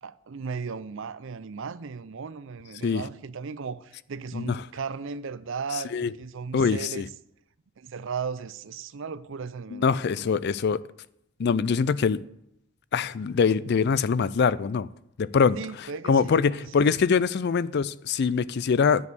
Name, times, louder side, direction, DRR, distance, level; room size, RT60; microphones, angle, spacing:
voice 1, 0.0-7.1 7.8-10.4 15.6-17.0, right 5 dB, 60° right, 0.5 m, -36 dB
voice 2, 6.5-7.1 9.7-10.8 11.4-12.2 12.9-14.9 15.2-15.6 16.1-19.1, left 5 dB, 50° left, 0.4 m, -23 dB
9.4 x 5.3 x 7.9 m
head